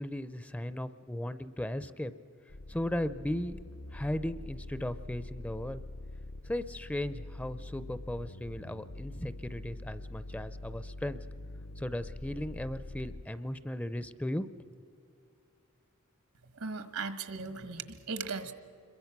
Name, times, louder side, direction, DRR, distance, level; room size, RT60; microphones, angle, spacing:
voice 1, 0.0-2.1 2.7-3.6 3.9-5.8 6.4-11.2 11.8-14.5, left 1 dB, 5° left, 13 dB, 0.5 m, -36 dB
sound 1, 2.5-13.3, left 2 dB, 65° left, 0.7 m, -45 dB
voice 2, 16.5-18.5, right 4 dB, 80° right, 10 dB, 1.6 m, -37 dB
26.5 x 22.5 x 6.0 m, 2.6 s
head